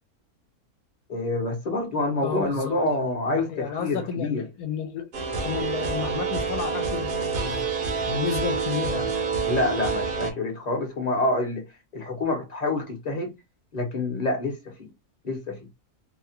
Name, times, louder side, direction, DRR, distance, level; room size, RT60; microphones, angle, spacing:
voice 1, 1.1-4.4 9.4-11.6 11.9-13.3 13.7-14.9 15.2-15.6, left 2 dB, 35° left, 0.9 m, -27 dB
voice 2, 2.2-5.1 5.4-7.7 8.1-9.2, left 7 dB, 85° left, 1.2 m, -32 dB
sound 1, 5.1-10.3, right 5 dB, 50° right, 0.7 m, -27 dB
2.8 x 2.3 x 2.8 m
omnidirectional pair, 1.6 m